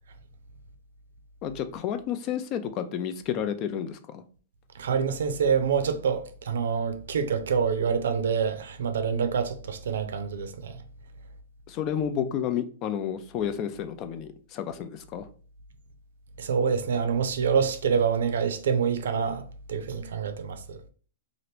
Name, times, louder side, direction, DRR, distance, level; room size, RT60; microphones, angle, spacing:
voice 1, 1.4-4.2 11.7-15.3, left 9 dB, 35° left, 0.4 m, -31 dB
voice 2, 4.7-10.8 16.4-20.8, right 6 dB, 85° right, 0.5 m, -26 dB
2.8 x 2.5 x 3.3 m
hypercardioid pair, 145°, 0 cm